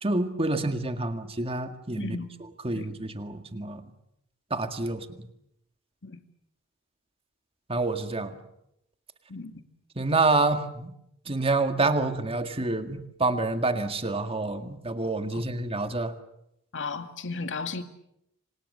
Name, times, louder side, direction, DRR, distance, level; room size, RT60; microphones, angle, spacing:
voice 1, 0.0-2.2 2.6-3.8 4.5-5.1 7.7-8.3 10.0-10.9 11.3-16.1, right 3 dB, 25° right, 7 dB, 1.9 m, -27 dB
voice 2, 2.0-2.3 2.7-2.9 6.0-6.2 9.3-9.6 15.3-15.4 16.7-17.8, left 4 dB, 55° left, 8 dB, 2.1 m, -34 dB
27.5 x 26.0 x 6.7 m, 0.80 s
head